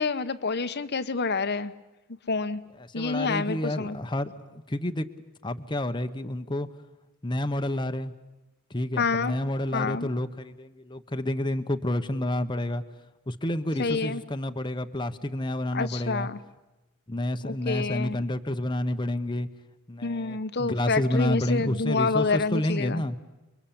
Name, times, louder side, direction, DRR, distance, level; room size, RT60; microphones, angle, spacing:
voice 1, 0.0-1.7 2.3-2.6 2.9-4.0 9.0-9.3 9.7-10.1 13.8-14.2 15.7-16.4 17.4-18.2 20.0-23.0, left 4 dB, 50° left, 10 dB, 1.0 m, -28 dB
voice 2, 2.8-5.1 5.4-6.7 7.2-8.1 8.7-12.8 13.3-16.3 17.1-19.5 19.9-23.2, left 1 dB, 20° left, 8 dB, 1.0 m, -29 dB
29.5 x 23.0 x 8.7 m, 1.0 s
head